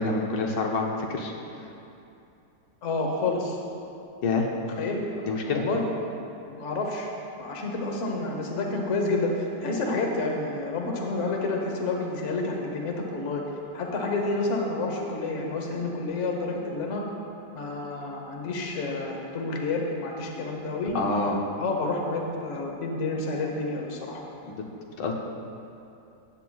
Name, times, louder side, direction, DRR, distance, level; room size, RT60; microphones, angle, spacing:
voice 1, 0.0-1.3 4.2-4.5 5.2-5.6 20.9-21.4 24.4-24.6 25.0-25.1, left 3 dB, 80° left, 0 dB, 1.5 m, -27 dB
voice 2, 2.8-3.6 4.8-5.8 6.4-7.1 7.4-13.4 13.7-17.0 17.5-21.0 21.6-24.2, left 3 dB, 50° left, 1 dB, 1.3 m, -29 dB
14.5 x 9.2 x 2.3 m, 2.7 s
omnidirectional pair, 1.9 m